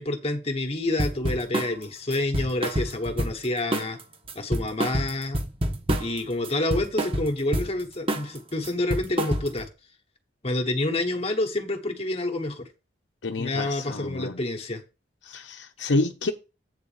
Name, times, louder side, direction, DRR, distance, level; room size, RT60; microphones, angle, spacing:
voice 1, 0.0-4.0 4.3-5.4 6.0-9.7 10.4-12.7 13.4-14.8, left 2 dB, 35° left, 1.2 m, -28 dB
sound 1, 1.0-1.7 2.1-3.5 3.7-4.0 4.3-6.2 6.4-7.7 8.1-8.4 8.6-9.7, right 1 dB, 30° right, 1.1 m, -27 dB
voice 2, 13.2-14.4 15.2-16.3, left 2 dB, 85° left, 0.7 m, -28 dB
8.3 x 3.9 x 7.0 m
head